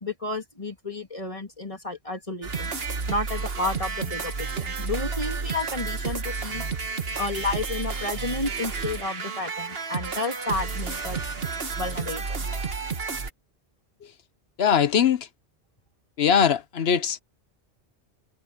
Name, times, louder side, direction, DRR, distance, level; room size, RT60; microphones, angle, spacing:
voice 1, 0.0-2.7 3.1-6.6 7.2-11.2 11.8-12.4, left 2 dB, 30° left, 2.9 m, -31 dB
sound 1, 2.4-13.3, right 4 dB, 60° right, 1.7 m, -31 dB
voice 2, 14.6-15.3 16.2-17.2, left 7 dB, 70° left, 1.1 m, -21 dB
omnidirectional pair, 1.1 m